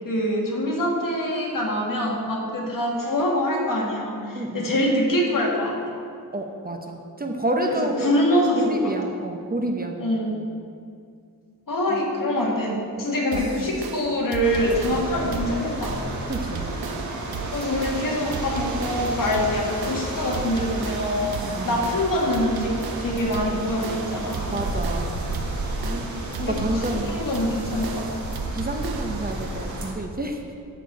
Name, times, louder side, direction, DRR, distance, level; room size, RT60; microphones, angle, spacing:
voice 1, 0.0-6.0 7.7-9.0 10.0-10.4 11.7-16.0 17.5-22.7 23.0-24.6 26.4-28.1, left 1 dB, 55° left, -2 dB, 2.0 m, -25 dB
voice 2, 4.3-4.8 6.3-8.3 8.6-10.3 11.9-12.0 13.0-13.8 14.9-15.0 16.3-16.7 21.2-21.8 23.5-23.6 24.1-24.2 24.4-25.1 25.6-27.2 28.5-30.4, right 1 dB, 25° right, 2 dB, 0.8 m, -30 dB
sound 1, 13.3-29.3, right 5 dB, 70° right, 0.7 m, -36 dB
sound 2, 14.4-29.9, right 2 dB, 50° right, 1.7 m, -32 dB
11.0 x 4.5 x 8.1 m, 2.3 s
wide cardioid pair, 125°, 38 cm